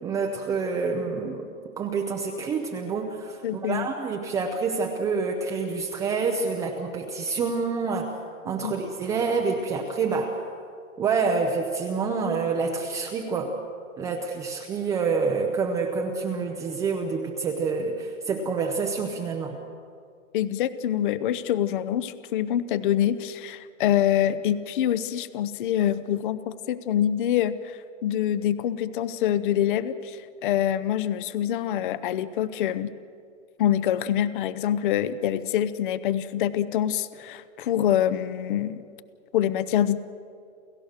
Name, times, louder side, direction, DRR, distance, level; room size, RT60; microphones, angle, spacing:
voice 1, 0.0-1.5 1.8-8.1 8.4-10.4 11.0-13.5 14.0-19.5, right 4 dB, 10° right, 1 dB, 0.6 m, -27 dB
voice 2, 3.4-3.9 8.6-8.7 20.3-32.9 33.6-38.8 39.3-40.0, left 11 dB, 40° left, 15 dB, 0.7 m, -25 dB
29.5 x 15.0 x 6.6 m, 2.3 s
hypercardioid pair, 150°, 40 cm